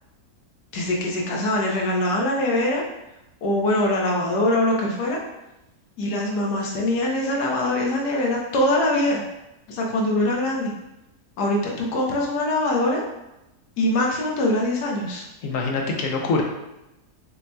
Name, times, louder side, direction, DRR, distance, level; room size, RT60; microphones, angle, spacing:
voice 1, 0.7-2.8 3.4-5.2 6.0-9.2 9.7-10.7 11.4-13.0 13.8-15.2, left 1 dB, 80° left, -1 dB, 1.4 m, -23 dB
voice 2, 15.4-16.4, left 3 dB, 65° left, 1 dB, 0.9 m, -24 dB
6.3 x 2.7 x 2.2 m, 0.93 s
omnidirectional pair, 1.7 m